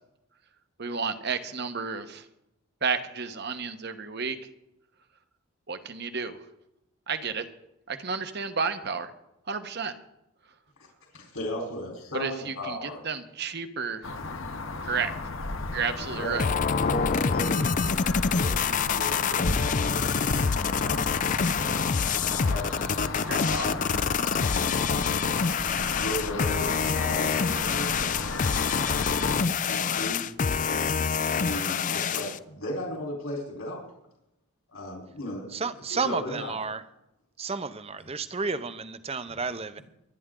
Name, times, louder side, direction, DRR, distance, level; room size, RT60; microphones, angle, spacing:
voice 1, 0.8-2.2 2.8-4.4 5.7-6.4 7.1-7.4 7.9-9.1 9.5-9.9 12.1-12.8 13.0-14.1 14.8-15.1 15.7-16.4 23.3-23.7, right 5 dB, 50° right, 9 dB, 1.1 m, -31 dB
voice 2, 11.1-13.0 16.0-19.8 20.6-21.3 21.8-24.1 24.5-25.1 26.0-28.7 29.6-30.2 30.6-33.8 34.7-36.5, left 1 dB, 75° left, -2 dB, 4.2 m, -37 dB
sound 1, 14.0-29.5, left 3 dB, 60° left, 1.2 m, -34 dB
sound 2, 16.4-32.4, left 6 dB, 35° left, 0.4 m, -26 dB
voice 3, 35.5-36.8 37.4-39.8, right 4 dB, 25° right, 12 dB, 0.7 m, -32 dB
24.0 x 10.0 x 3.8 m, 0.85 s
head